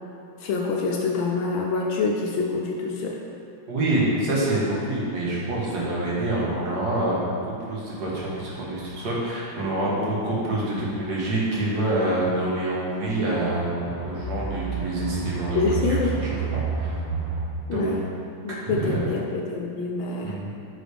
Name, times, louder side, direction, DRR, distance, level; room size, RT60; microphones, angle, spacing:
voice 1, 0.4-3.2 9.8-10.2 15.5-16.1 17.7-18.0 18.4-20.4, left 4 dB, 75° left, 0 dB, 1.4 m, -26 dB
voice 2, 3.7-7.3 7.7-16.4 16.8-16.9 17.7-18.0 18.5-19.0 20.2-20.5, right 2 dB, 50° right, -6 dB, 1.9 m, -26 dB
sound 1, 8.1-8.2 8.9-9.2 10.2-10.4 12.2-12.5 13.0-17.5, right 5 dB, 90° right, 1.7 m, -31 dB
8.9 x 5.0 x 3.4 m, 2.7 s
omnidirectional pair, 2.3 m